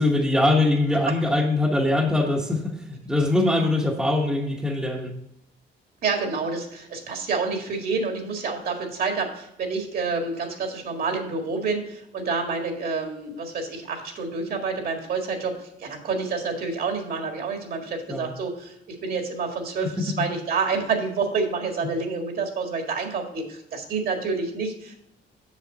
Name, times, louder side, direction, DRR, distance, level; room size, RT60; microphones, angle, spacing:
voice 1, 0.0-5.1 18.1-18.3 20.0-20.1, left 2 dB, 5° right, 0 dB, 1.1 m, -22 dB
voice 2, 6.0-25.0, right 4 dB, 55° right, 4 dB, 1.8 m, -28 dB
7.4 x 7.1 x 4.0 m, 0.78 s
cardioid pair, 155°, 19 cm